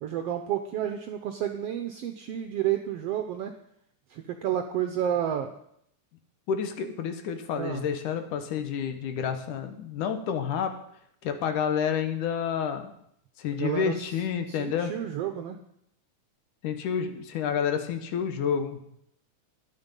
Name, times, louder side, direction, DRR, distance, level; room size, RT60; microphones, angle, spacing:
voice 1, 0.0-3.5 4.1-5.5 7.5-7.8 13.6-13.9 14.5-15.6, right 10 dB, 80° right, 7 dB, 1.4 m, -30 dB
voice 2, 6.5-10.7 11.2-12.9 13.4-14.9 16.6-18.8, left 7 dB, 80° left, 8 dB, 2.6 m, -29 dB
12.0 x 9.7 x 5.3 m, 0.72 s
omnidirectional pair, 3.6 m